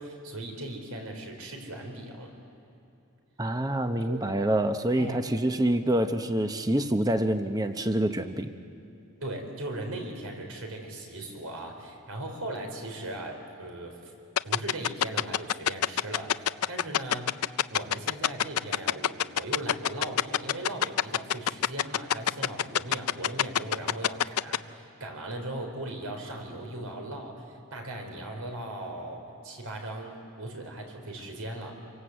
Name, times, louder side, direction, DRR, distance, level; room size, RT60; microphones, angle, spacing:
voice 1, 0.0-2.3 4.1-4.2 4.9-5.2 9.2-14.1 14.4-17.4 17.7-31.7, right 1 dB, 80° right, 3 dB, 4.5 m, -38 dB
voice 2, 3.4-8.5, right 1 dB, 15° right, 8 dB, 0.8 m, -26 dB
sound 1, 14.4-24.6, left 10 dB, 80° left, 0.5 m, -24 dB
27.5 x 24.5 x 8.1 m, 2.9 s
head